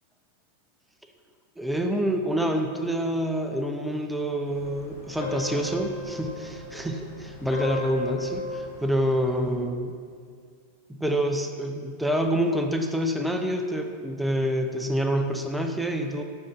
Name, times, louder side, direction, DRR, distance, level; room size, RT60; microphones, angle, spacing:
voice 1, 1.6-9.9 10.9-16.2, equal, 5° right, 4 dB, 0.4 m, -27 dB
sound 1, 4.4-9.5, left 3 dB, 50° left, 0.9 m, -35 dB
6.2 x 3.6 x 4.3 m, 2.1 s
figure-of-eight pair, 90°, 0 cm